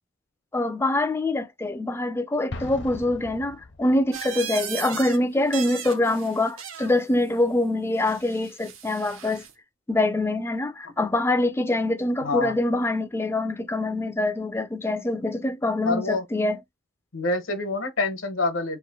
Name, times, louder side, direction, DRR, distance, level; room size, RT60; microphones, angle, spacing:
voice 1, 0.5-9.4 9.9-16.6, left 2 dB, 10° left, 0.3 m, -24 dB
Explosion, 2.5-4.2, left 2 dB, 55° left, 0.7 m, -39 dB
sound 1, 4.1-5.2 5.4-7.0 8.0-9.5, right 8 dB, 80° right, 0.7 m, -37 dB
voice 2, 12.2-12.6 15.8-16.3 17.1-18.8, left 3 dB, 75° left, 1.1 m, -26 dB
3.0 x 2.5 x 4.0 m
head